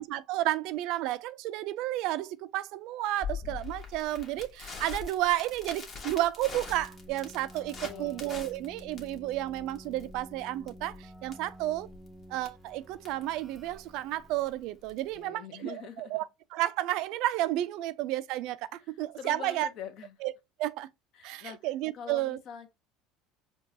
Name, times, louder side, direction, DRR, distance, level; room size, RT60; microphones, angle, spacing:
voice 1, 0.0-11.9 12.3-19.7 20.2-20.3 20.6-20.9 21.2-22.4, right 15 dB, 65° right, 0.3 m, -32 dB
Crackle, 3.2-15.2, left 5 dB, 35° left, 1.2 m, -44 dB
Keyboard (musical), 6.6-14.7, equal, 5° right, 0.5 m, -51 dB
voice 2, 7.8-8.2 15.1-16.1 19.2-20.2 21.1-21.6 21.9-22.7, left 7 dB, 55° left, 0.8 m, -43 dB
4.6 x 2.3 x 2.7 m
supercardioid pair, 105°, 0 cm